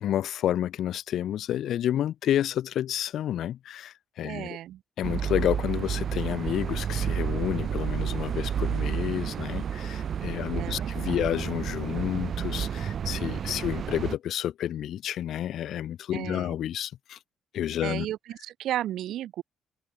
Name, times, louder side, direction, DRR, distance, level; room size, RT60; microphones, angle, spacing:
voice 1, 0.0-4.6 5.0-17.2 17.5-18.1, left 11 dB, 75° left, 0.3 m, -30 dB
voice 2, 4.2-4.8 10.5-11.3 16.1-16.6 17.8-19.4, right 12 dB, 80° right, 1.0 m, -34 dB
sound 1, 5.0-14.2, right 8 dB, 55° right, 0.7 m, -31 dB
cardioid pair, 90°, 0 cm